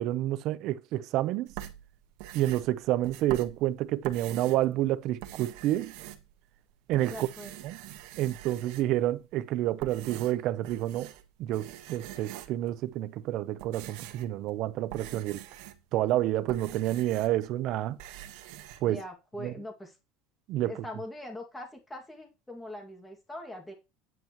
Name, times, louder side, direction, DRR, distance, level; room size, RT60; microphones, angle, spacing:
voice 1, 0.0-1.5 2.3-5.9 6.9-7.3 7.6-7.8 8.2-11.1 11.4-15.4 15.9-18.0 18.8-19.0 19.4-19.5 20.5-20.7, right 14 dB, 50° right, 0.6 m, -29 dB
sound 1, 1.5-4.7 5.1-6.6 6.9-9.1 9.6-11.3 11.5-12.7 13.3-17.5 17.8-18.8, right 13 dB, 70° right, 1.4 m, -44 dB
voice 2, 7.1-7.6 18.9-19.9 20.6-23.7, left 1 dB, 5° left, 2.2 m, -42 dB
9.3 x 9.2 x 3.1 m
cardioid pair, 150°, 0 cm